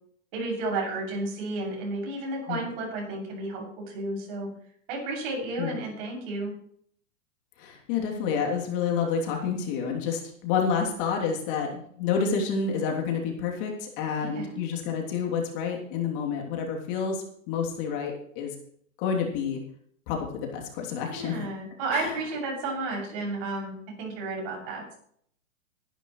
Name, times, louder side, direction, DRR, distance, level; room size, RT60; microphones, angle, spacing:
voice 1, 0.3-4.5 4.9-6.5 14.3-14.4 21.1-25.0, right 2 dB, 45° right, -1 dB, 7.3 m, -32 dB
voice 2, 7.6-18.5 19.0-19.6 20.1-21.4 21.9-22.2, left 6 dB, 40° left, 1 dB, 3.2 m, -29 dB
20.5 x 11.0 x 3.2 m, 0.64 s
hypercardioid pair, 135°, 40 cm